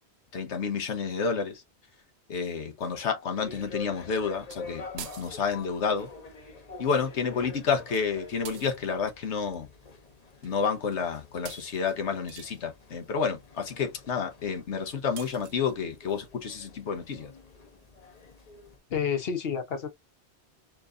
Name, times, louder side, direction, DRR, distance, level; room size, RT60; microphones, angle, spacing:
voice 1, 0.3-1.6 2.3-6.1 6.8-9.7 10.4-17.3, left 6 dB, 85° left, 1.3 m, -30 dB
sound 1, 3.3-18.8, left 4 dB, 40° left, 0.9 m, -47 dB
sound 2, 4.1-4.2 4.5-4.6 5.0-5.7 8.4-8.8 10.4-10.6 10.9-11.1 11.4-12.6 15.2-15.7, right 9 dB, 70° right, 0.9 m, -45 dB
voice 2, 18.9-19.9, left 7 dB, 60° left, 1.1 m, -29 dB
4.5 x 2.9 x 2.5 m
omnidirectional pair, 1.1 m